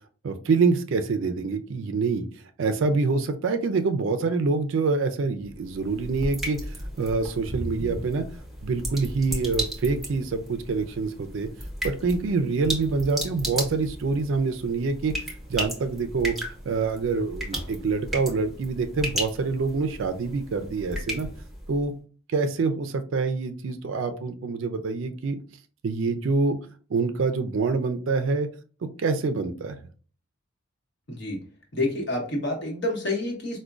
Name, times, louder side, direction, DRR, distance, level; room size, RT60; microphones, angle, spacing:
voice 1, 0.2-2.3 2.6-8.2 8.6-11.5 11.8-21.3 21.7-21.9 22.3-25.4 25.8-26.6 26.9-28.5 29.0-29.8, right 4 dB, 65° right, 8 dB, 0.4 m, -26 dB
sound 1, 5.4-21.9, right 1 dB, ahead, 0.8 m, -35 dB
Slam, 14.3-15.0 15.2-15.4 15.8-15.9 16.7-17.1 17.3-18.6 21.3-21.4 21.6-21.9 23.4-23.5, equal, 25° left, 0.6 m, -47 dB
voice 2, 31.1-31.4 31.7-33.6, left 1 dB, 55° left, 1 dB, 1.0 m, -28 dB
4.8 x 2.1 x 2.4 m, 0.39 s
head